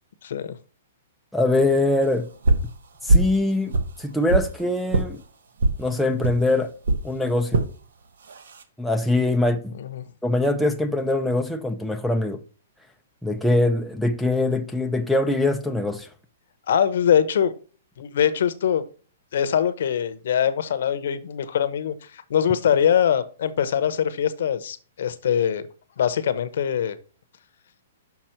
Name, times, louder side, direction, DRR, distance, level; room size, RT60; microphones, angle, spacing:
voice 1, 0.2-0.6 9.8-10.0 16.7-17.5 18.0-18.8 19.3-25.6 26.0-27.0, left 8 dB, 60° left, 0.8 m, -23 dB
voice 2, 1.3-2.3 3.0-5.2 5.8-6.8 7.0-7.7 8.8-9.7 10.2-12.4 13.2-16.1, left 2 dB, ahead, 0.4 m, -23 dB
sound 1, 2.4-2.7 3.1-3.4 3.7-4.5 4.9-5.1 5.6-5.8 6.2-6.4 6.8-7.0 7.5-7.7 8.3-8.6, right 2 dB, 85° right, 1.1 m, -20 dB
5.9 x 5.9 x 4.4 m
hypercardioid pair, 165°, 0 cm